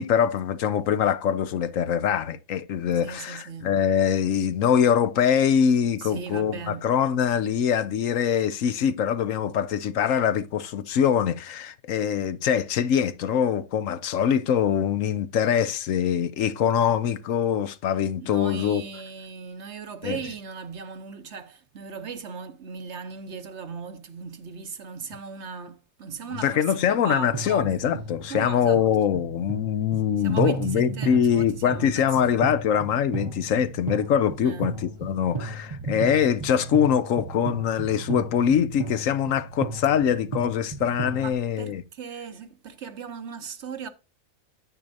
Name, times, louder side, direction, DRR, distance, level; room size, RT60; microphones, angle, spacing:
voice 1, 0.0-18.8 20.0-20.2 26.4-41.8, left 8 dB, 70° left, 1.1 m, -23 dB
voice 2, 3.0-3.7 6.0-6.9 18.2-27.7 28.3-28.8 30.2-32.4 34.4-34.7 41.2-43.9, right 6 dB, 55° right, 1.2 m, -38 dB
sound 1, 27.3-41.3, right 4 dB, 30° right, 0.6 m, -35 dB
9.6 x 8.6 x 2.6 m
omnidirectional pair, 1.4 m